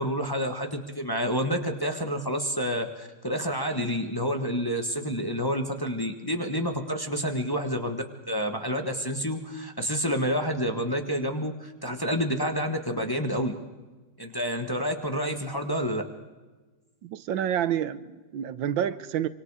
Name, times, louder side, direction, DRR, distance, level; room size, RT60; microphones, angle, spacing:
voice 1, 0.0-13.5 14.2-16.0, equal, 15° left, 4 dB, 1.3 m, -29 dB
voice 2, 17.0-19.3, right 10 dB, 90° right, 14 dB, 1.6 m, -28 dB
25.5 x 25.0 x 4.9 m, 1.2 s
omnidirectional pair, 2.0 m